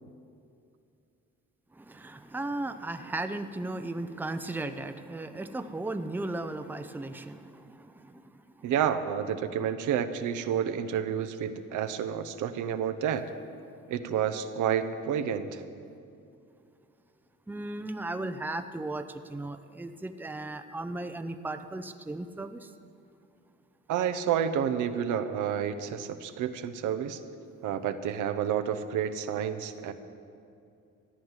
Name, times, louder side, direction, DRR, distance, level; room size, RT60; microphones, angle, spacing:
voice 1, 1.8-7.8 17.5-22.7, right 2 dB, 5° right, 9 dB, 0.6 m, -36 dB
voice 2, 8.6-13.3 13.9-15.6 23.9-27.2 27.6-29.9, right 8 dB, 80° right, 9 dB, 0.9 m, -30 dB
14.0 x 9.6 x 7.4 m, 2.5 s
cardioid pair, 90°, 30 cm